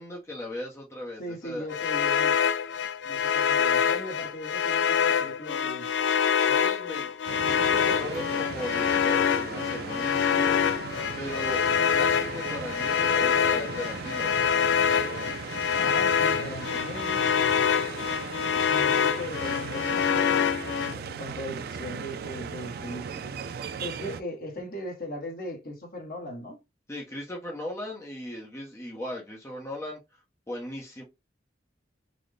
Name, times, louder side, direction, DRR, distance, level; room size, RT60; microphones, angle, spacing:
voice 1, 0.0-1.7 6.4-7.1 7.4-10.6 11.2-14.3 26.9-30.0 30.5-31.0, left 1 dB, 15° left, 0.7 m, -38 dB
voice 2, 1.2-2.4 3.0-5.9 15.7-17.3 18.7-20.5 20.7-23.4 23.8-26.6, left 1 dB, 55° left, 1.0 m, -38 dB
sound 1, 1.7-20.9, left 7 dB, 80° left, 0.3 m, -25 dB
sound 2, 7.3-24.2, right 6 dB, 55° right, 0.3 m, -37 dB
4.0 x 2.1 x 3.2 m
head